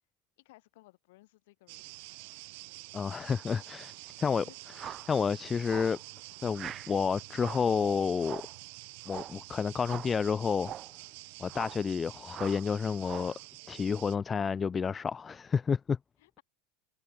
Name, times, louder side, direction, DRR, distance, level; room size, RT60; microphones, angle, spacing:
voice 1, 0.4-2.1 4.2-4.6 16.2-16.4, left 20 dB, 65° left, 7.5 m, -59 dB
sound 1, 1.7-14.2, right 28 dB, 60° right, 2.0 m, -48 dB
voice 2, 2.9-4.5 4.8-6.0 6.4-8.4 9.1-10.7 11.4-13.3 13.7-16.0, left 6 dB, 25° left, 0.6 m, -30 dB
sound 2, 4.7-5.1 5.7-6.0 6.5-6.9 7.3-7.7 8.2-8.6 9.1-9.4 9.8-10.2 10.6-10.9 11.5-11.9 12.3-12.7 13.0-13.4, right 10 dB, 35° right, 1.0 m, -43 dB
figure-of-eight pair, 85°, 0 cm